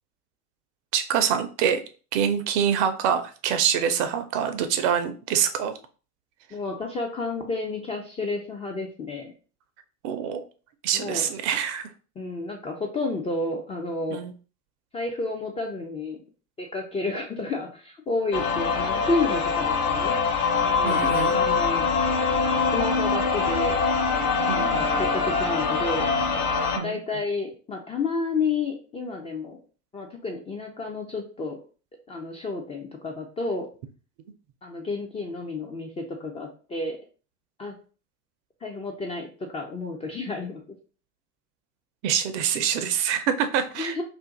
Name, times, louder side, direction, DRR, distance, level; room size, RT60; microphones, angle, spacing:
voice 1, 0.9-1.8 2.1-5.7 10.0-10.4 10.8-11.9 14.1-14.3 20.8-21.4 24.4-24.9 26.7-27.0 42.0-43.9, right 8 dB, 50° right, 9 dB, 0.6 m, -25 dB
voice 2, 6.5-9.3 10.9-11.3 12.2-14.2 14.9-16.2 16.6-20.1 20.6-21.1 21.3-21.9 22.7-23.8 24.5-26.1 26.8-29.6 29.9-31.6 32.1-33.7 34.6-37.0 37.6-37.8 38.6-40.6 43.8-44.0, left 3 dB, 15° left, 1 dB, 0.4 m, -31 dB
sound 1, 18.3-26.8, left 5 dB, 50° left, 1.1 m, -24 dB
2.5 x 2.5 x 3.6 m, 0.37 s
figure-of-eight pair, 75°, 46 cm